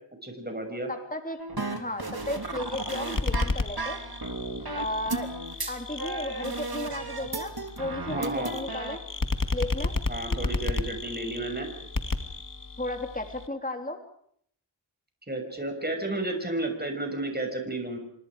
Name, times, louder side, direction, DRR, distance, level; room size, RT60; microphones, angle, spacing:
voice 1, 0.2-0.9 8.1-8.5 10.1-11.7 15.3-18.0, right 2 dB, 20° right, 4 dB, 6.9 m, -32 dB
voice 2, 0.9-1.4 1.7-4.0 4.7-5.3 5.7-9.0 9.5-9.9 12.8-14.0, left 1 dB, 15° left, 5 dB, 3.5 m, -34 dB
sound 1, 1.4-9.0, right 3 dB, 45° right, 3.3 m, -34 dB
sound 2, 2.2-13.5, left 3 dB, 40° left, 2.2 m, -33 dB
28.5 x 26.0 x 5.1 m, 0.65 s
wide cardioid pair, 45°, 49 cm